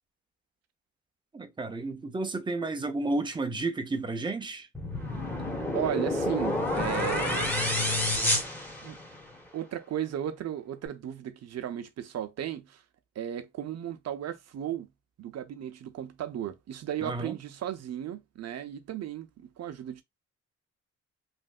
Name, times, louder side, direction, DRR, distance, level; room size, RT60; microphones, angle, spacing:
voice 1, 1.3-4.7 17.0-17.4, right 2 dB, 15° right, 0.6 m, -32 dB
sound 1, 4.8-9.4, left 1 dB, 5° left, 1.2 m, -29 dB
voice 2, 5.7-7.5 8.8-9.0 9.5-12.8 13.2-14.9 15.2-20.0, right 10 dB, 60° right, 0.7 m, -35 dB
3.2 x 2.6 x 2.4 m
cardioid pair, 90°, 30 cm